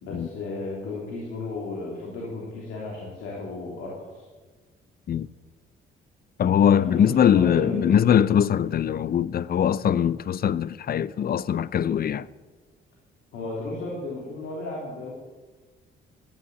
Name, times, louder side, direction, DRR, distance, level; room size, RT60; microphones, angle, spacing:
voice 1, 0.0-4.3 6.7-8.0 8.6-8.7 13.3-15.1, left 2 dB, 85° left, 3.4 m, -34 dB
voice 2, 6.4-12.3, left 9 dB, 50° left, 0.6 m, -21 dB
13.0 x 9.4 x 9.6 m
cardioid pair, 90°, 20 cm